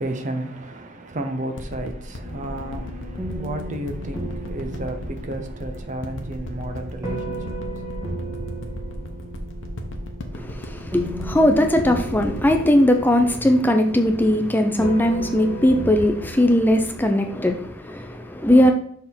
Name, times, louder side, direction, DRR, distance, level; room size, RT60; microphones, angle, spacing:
voice 1, 0.0-7.6, right 1 dB, 40° right, 0.7 m, -32 dB
sound 1, 1.6-14.3 14.9-15.0, left 1 dB, 85° left, 0.9 m, -35 dB
sound 2, 2.2-17.7, right 1 dB, 15° right, 1.5 m, -36 dB
voice 2, 10.3-18.7, left 1 dB, 10° left, 0.4 m, -19 dB
6.5 x 3.6 x 4.4 m
head